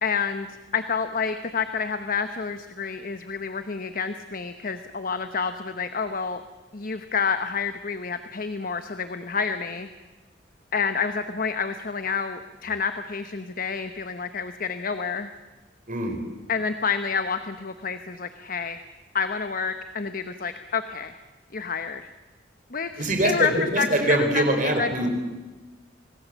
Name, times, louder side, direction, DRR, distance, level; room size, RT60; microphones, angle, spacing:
voice 1, 0.0-6.4 6.7-9.9 10.7-15.3 16.5-18.8 19.1-21.2 21.5-22.1 22.7-25.1, left 5 dB, 45° left, 9 dB, 1.0 m, -29 dB
voice 2, 15.9-16.2 23.0-25.1, right 1 dB, 45° right, 5 dB, 4.3 m, -23 dB
26.0 x 19.5 x 7.4 m, 1.2 s
head